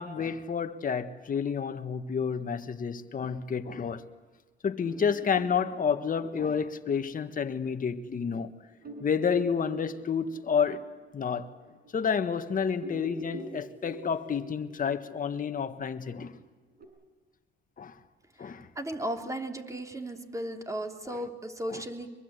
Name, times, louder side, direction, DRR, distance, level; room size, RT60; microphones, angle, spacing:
voice 1, 0.0-4.0 4.6-8.5 9.0-10.8 11.1-11.5 11.9-16.3 17.8-17.9 18.4-18.7 21.1-21.2 21.7-21.8, left 6 dB, 45° left, 1.6 m, -30 dB
sound 1, 4.8-7.9 8.3-8.4 8.8-12.4 12.7-16.8, right 1 dB, 50° right, 6.2 m, -46 dB
voice 2, 18.4-22.1, right 1 dB, 15° right, 3.2 m, -36 dB
24.0 x 23.0 x 8.3 m
cardioid pair, 90°, 20 cm